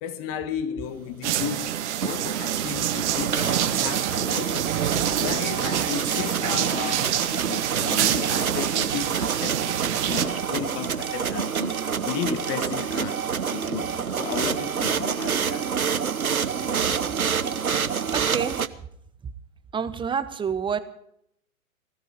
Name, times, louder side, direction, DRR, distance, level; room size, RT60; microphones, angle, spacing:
voice 1, 0.0-4.9 5.2-7.1 7.4-9.6 10.1-13.2 13.5-15.7, left 9 dB, 35° left, 1.9 m, -34 dB
sound 1, 1.2-10.3, right 11 dB, 55° right, 1.8 m, -27 dB
sound 2, 1.8-18.7, right 6 dB, 85° right, 1.0 m, -27 dB
voice 2, 18.1-18.9 19.2-19.3 19.7-20.8, right 7 dB, 10° right, 1.1 m, -28 dB
20.0 x 13.5 x 5.2 m
figure-of-eight pair, 110°, 42 cm